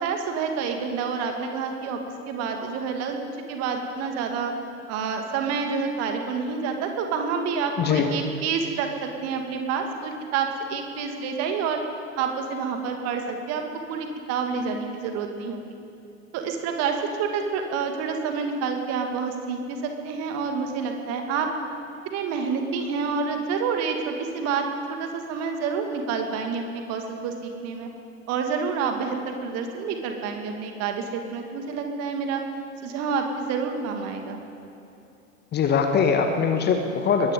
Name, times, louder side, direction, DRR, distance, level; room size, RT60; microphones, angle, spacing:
voice 1, 0.0-2.0 2.3-3.2 3.5-4.5 4.9-11.8 12.2-15.6 16.3-21.5 22.1-24.6 25.0-27.9 28.3-32.4 32.8-34.4, right 5 dB, 40° right, 4 dB, 2.1 m, -28 dB
voice 2, 7.8-8.1 35.5-37.3, left 6 dB, 25° left, 6 dB, 1.3 m, -22 dB
21.5 x 17.0 x 3.8 m, 2.7 s
figure-of-eight pair, 85°, 40 cm